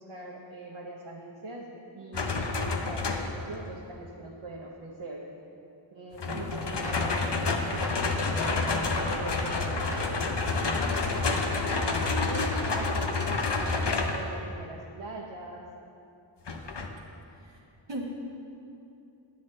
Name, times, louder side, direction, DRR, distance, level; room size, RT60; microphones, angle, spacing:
voice 1, 0.0-5.2 5.9-15.6, right 2 dB, 90° right, -3 dB, 0.9 m, -42 dB
sound 1, 2.1-3.5 6.2-14.3 16.5-16.9, left 3 dB, 60° left, 0.8 m, -29 dB
Gunshot gunfire, 6.8-7.1 7.8-8.1 8.4-9.2 9.9-10.2 10.9-11.2 11.7-12.0 12.5-13.1, equal, 5° right, 1.1 m, -41 dB
voice 2, 17.3-18.0, right 1 dB, 60° right, -2 dB, 1.0 m, -40 dB
10.5 x 9.3 x 3.2 m, 2.7 s
wide cardioid pair, 50°, 48 cm